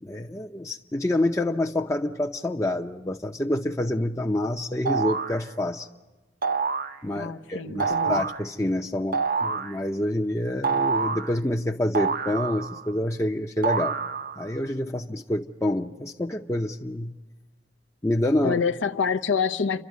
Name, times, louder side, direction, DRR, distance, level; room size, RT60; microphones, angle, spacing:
voice 1, 0.0-5.9 7.0-14.0 14.4-17.1 18.0-18.6, left 1 dB, 15° left, 1 dB, 0.7 m, -27 dB
sound 1, 4.9-5.4 6.4-7.0 7.8-8.4 9.1-9.8 10.6-11.3 11.9-12.9 13.6-14.5, right 5 dB, 50° right, 0.7 m, -26 dB
voice 2, 7.1-8.2 18.4-19.8, left 5 dB, 75° left, 9 dB, 0.7 m, -26 dB
29.5 x 12.5 x 9.4 m, 1.2 s
head